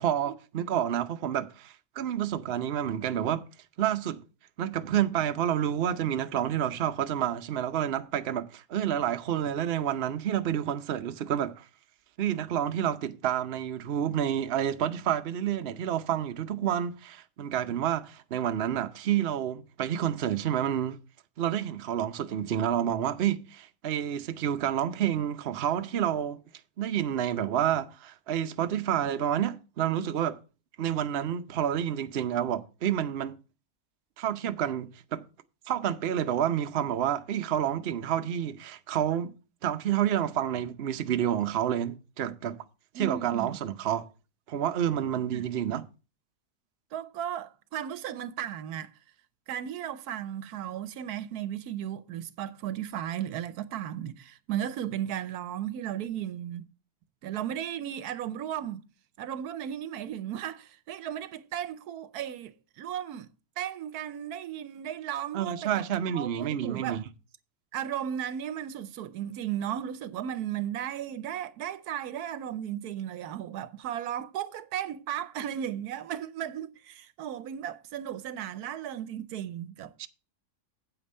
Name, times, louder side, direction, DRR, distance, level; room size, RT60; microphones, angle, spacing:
voice 1, 0.0-3.5 3.8-4.2 4.6-11.6 12.2-21.0 21.4-26.4 26.8-30.4 30.8-33.4 34.2-35.2 35.7-39.3 39.6-42.6 42.9-44.1 44.5-45.9 65.3-67.0 80.0-80.1, right 10 dB, 50° right, 0.8 m, -29 dB
voice 2, 42.9-43.6 45.3-45.4 46.9-48.9 49.5-56.6 57.2-58.8 59.2-63.3 63.6-67.0 67.7-80.1, right 10 dB, 80° right, 1.2 m, -35 dB
8.8 x 8.1 x 4.2 m
omnidirectional pair, 1.6 m